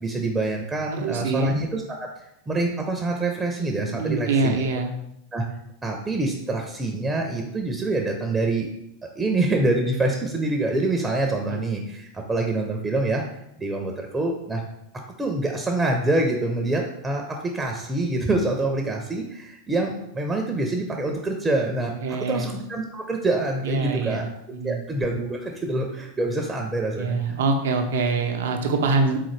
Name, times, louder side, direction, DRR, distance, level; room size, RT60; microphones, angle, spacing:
voice 1, 0.0-4.7 5.3-5.5 5.8-8.7 9.0-13.2 13.6-14.6 15.2-24.3 24.6-27.4, right 2 dB, 15° right, 2 dB, 0.6 m, -26 dB
voice 2, 0.9-1.5 3.9-4.9 11.5-11.6 22.0-22.5 23.6-24.8 27.0-29.2, right 4 dB, 75° right, 4 dB, 0.6 m, -24 dB
3.8 x 3.7 x 3.2 m, 0.81 s
hypercardioid pair, 100°, 0 cm